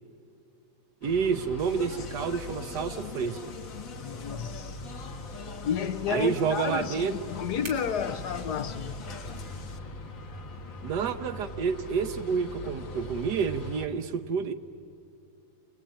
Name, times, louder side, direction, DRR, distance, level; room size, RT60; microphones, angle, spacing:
sound 1, 1.0-13.9, left 1 dB, 80° left, 2.4 m, -41 dB
voice 1, 1.0-3.4 6.1-7.1 10.8-14.5, right 6 dB, 65° right, 1.3 m, -29 dB
sound 2, 1.4-13.3, right 3 dB, 90° right, 3.8 m, -55 dB
Speech, 1.6-9.8, left 6 dB, 50° left, 1.5 m, -45 dB
voice 2, 4.0-4.8 5.6-9.0, left 8 dB, 65° left, 1.3 m, -31 dB
27.5 x 20.5 x 9.0 m
omnidirectional pair, 2.1 m